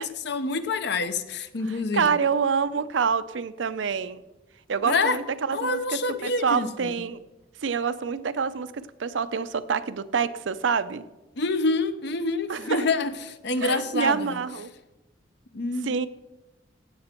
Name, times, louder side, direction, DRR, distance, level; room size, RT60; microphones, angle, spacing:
voice 1, 0.0-2.1 4.8-5.2 5.5-6.9 11.4-14.4 15.5-15.9, left 3 dB, 65° left, 11 dB, 0.8 m, -27 dB
voice 2, 1.9-4.2 4.7-7.2 7.6-11.0 12.5-12.8 13.6-14.7 15.8-16.1, right 6 dB, 85° right, 13 dB, 0.6 m, -27 dB
16.0 x 7.8 x 4.4 m, 1.0 s
head